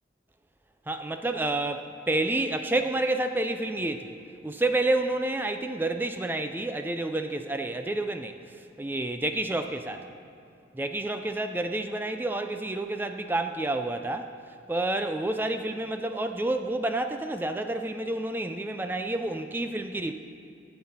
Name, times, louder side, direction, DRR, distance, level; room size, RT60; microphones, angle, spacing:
voice 1, 0.9-4.1 4.4-10.0 10.7-14.3 14.7-20.1, right 2 dB, 10° right, 7 dB, 0.3 m, -29 dB
16.0 x 7.8 x 4.2 m, 2.5 s
head